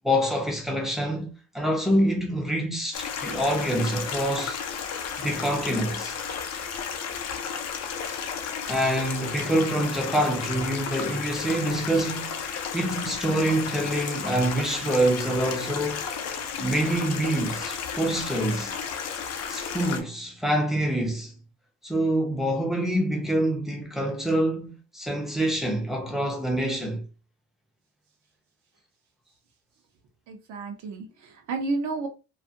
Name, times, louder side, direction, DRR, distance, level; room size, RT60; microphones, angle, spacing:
voice 1, 0.0-4.6 5.2-6.1 8.6-12.4 12.7-16.1 16.6-18.7 19.5-21.3 21.8-27.0, right 1 dB, ahead, 0.5 m, -26 dB
Stream, 2.9-20.0, left 6 dB, 55° left, 0.5 m, -33 dB
voice 2, 30.3-32.1, right 3 dB, 65° right, 0.7 m, -31 dB
2.5 x 2.4 x 2.6 m
cardioid pair, 165°, 32 cm